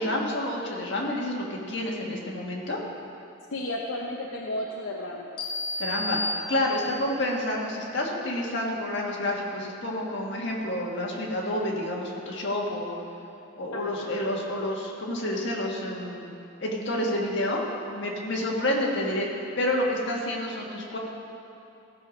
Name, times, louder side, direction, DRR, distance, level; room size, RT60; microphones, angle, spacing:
voice 1, 0.0-2.8 5.8-13.0 13.6-17.6 17.9-19.3 19.6-21.0, left 1 dB, 60° left, -2 dB, 1.6 m, -29 dB
voice 2, 3.5-5.3 13.7-14.1, left 1 dB, 75° left, -1 dB, 0.7 m, -33 dB
sound 1, 5.4-7.2, left 1 dB, 25° left, 1.1 m, -32 dB
15.5 x 6.7 x 5.1 m, 2.7 s
head